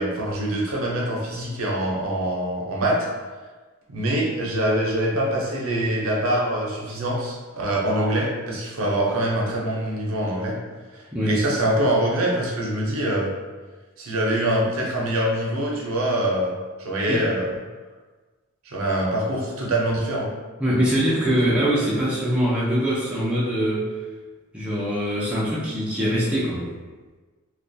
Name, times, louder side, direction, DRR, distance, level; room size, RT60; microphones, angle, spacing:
voice 1, 0.0-3.1 3.9-10.6 10.9-13.3 14.0-17.5 18.7-20.3, right 1 dB, 75° right, -2 dB, 0.5 m, -24 dB
voice 2, 20.6-23.9 24.5-26.7, equal, 5° right, -8 dB, 0.4 m, -23 dB
2.2 x 2.2 x 2.5 m, 1.3 s
head